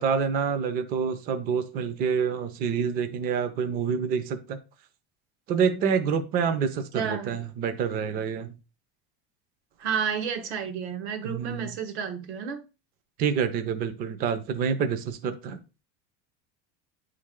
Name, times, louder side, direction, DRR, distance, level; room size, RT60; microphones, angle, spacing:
voice 1, 0.0-4.6 5.5-8.6 11.2-11.7 13.2-15.6, right 6 dB, 30° right, 0.5 m, -27 dB
voice 2, 6.9-7.3 9.8-12.6, right 7 dB, 90° right, 1.2 m, -31 dB
9.0 x 3.3 x 3.6 m
cardioid pair, 175°, 32 cm